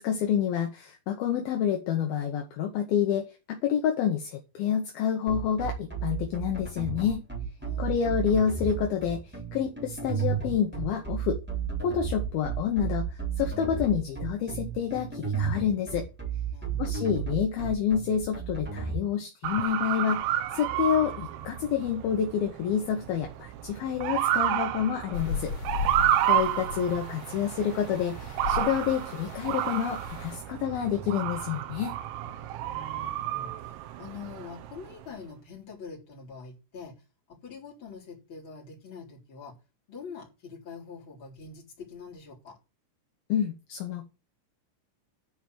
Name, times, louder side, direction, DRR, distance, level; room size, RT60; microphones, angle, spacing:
voice 1, 0.0-7.2 7.8-9.2 9.5-11.4 11.8-13.0 13.4-16.1 16.8-25.5 26.2-31.9 43.3-44.0, left 8 dB, 70° left, 2.4 m, -28 dB
sound 1, 5.3-19.0, right 7 dB, 5° right, 2.1 m, -32 dB
voice 2, 7.6-8.1 16.5-16.9 32.6-37.0 37.3-39.6 39.9-42.6, left 4 dB, 25° left, 3.8 m, -45 dB
Motor vehicle (road) / Siren, 19.4-35.0, right 12 dB, 85° right, 3.6 m, -31 dB
sound 2, 25.1-30.4, left 6 dB, 45° left, 4.0 m, -37 dB
10.0 x 5.1 x 7.7 m
omnidirectional pair, 5.9 m